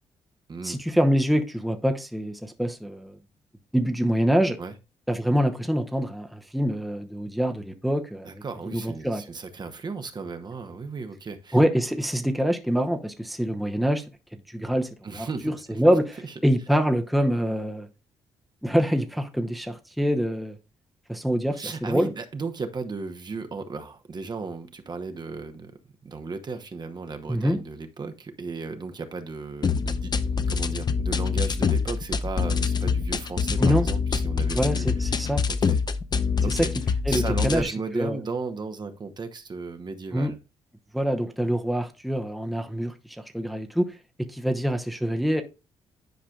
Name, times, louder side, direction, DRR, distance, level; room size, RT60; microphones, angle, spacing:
voice 1, 0.6-3.2 3.7-4.6 5.1-9.2 11.5-14.1 14.5-14.9 15.1-17.9 18.6-20.5 21.1-22.1 27.3-27.6 33.6-33.8 34.5-35.4 36.5-36.7 37.1-38.2 40.1-40.3 40.9-43.9 44.2-45.4, equal, ahead, 0.9 m, -25 dB
voice 2, 8.2-11.6 15.0-15.8 16.2-16.3 21.5-25.7 26.0-35.8 36.4-36.7 37.1-40.4, right 4 dB, 35° right, 1.0 m, -35 dB
sound 1, 29.6-37.6, left 5 dB, 35° left, 0.6 m, -25 dB
10.5 x 4.9 x 2.4 m
cardioid pair, 80°, 12 cm